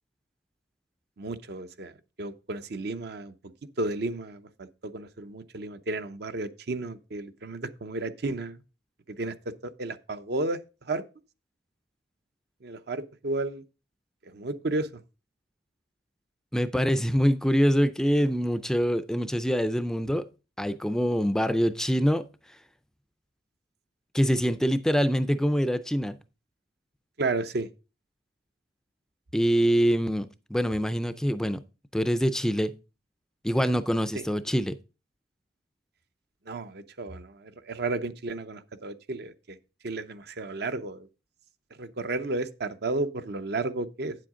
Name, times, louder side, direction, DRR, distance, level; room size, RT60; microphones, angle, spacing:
voice 1, 1.2-1.9 2.2-3.3 3.8-8.6 9.1-9.3 9.6-10.6 10.9-11.0 12.6-13.6 14.3-14.9 27.2-27.7 34.1-34.2 36.5-39.6 39.8-41.1 41.8-44.2, right 2 dB, 60° right, 0.7 m, -32 dB
voice 2, 16.5-20.3 20.6-22.3 24.1-26.2 29.3-31.6 31.9-32.7 33.4-34.8, equal, 5° left, 0.4 m, -25 dB
8.7 x 7.6 x 3.7 m
head